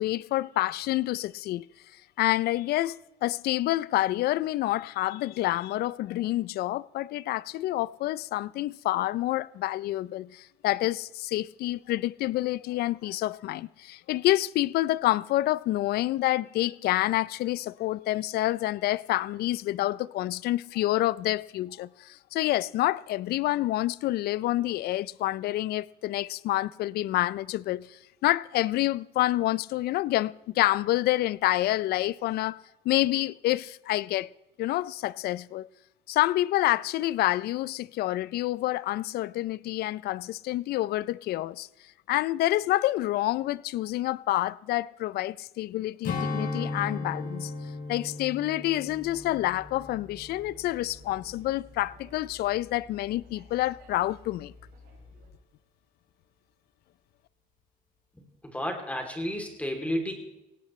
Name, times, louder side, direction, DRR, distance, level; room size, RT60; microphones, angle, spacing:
voice 1, 0.0-1.7 2.2-32.6 32.9-34.3 34.6-35.7 36.1-41.7 42.1-47.5 47.9-54.5, left 16 dB, 70° left, 0.5 m, -28 dB
Strum, 46.0-50.8 51.1-51.4, left 3 dB, 55° left, 2.9 m, -36 dB
sound 1, 48.9-55.3, left 2 dB, 85° right, 6.1 m, -52 dB
voice 2, 58.4-60.1, equal, 10° left, 2.9 m, -31 dB
17.5 x 17.0 x 3.2 m
cardioid pair, 110°, 17 cm